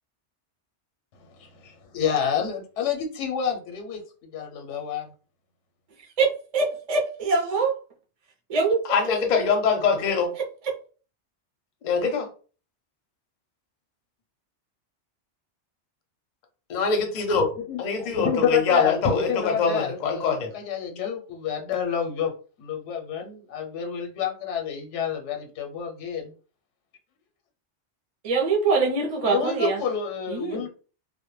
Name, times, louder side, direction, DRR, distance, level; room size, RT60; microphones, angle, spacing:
voice 1, 1.3-5.1 17.6-22.3 22.6-26.3 29.2-30.7, left 7 dB, 85° left, 2 dB, 0.9 m, -29 dB
voice 2, 6.2-7.7 8.5-8.8 28.2-29.8 30.3-30.6, right 4 dB, 45° right, -1 dB, 0.5 m, -23 dB
voice 3, 8.9-10.3 11.8-12.3 16.7-17.5 17.8-20.5, left 5 dB, 50° left, 4 dB, 0.6 m, -23 dB
2.1 x 2.1 x 3.0 m, 0.38 s
omnidirectional pair, 1.2 m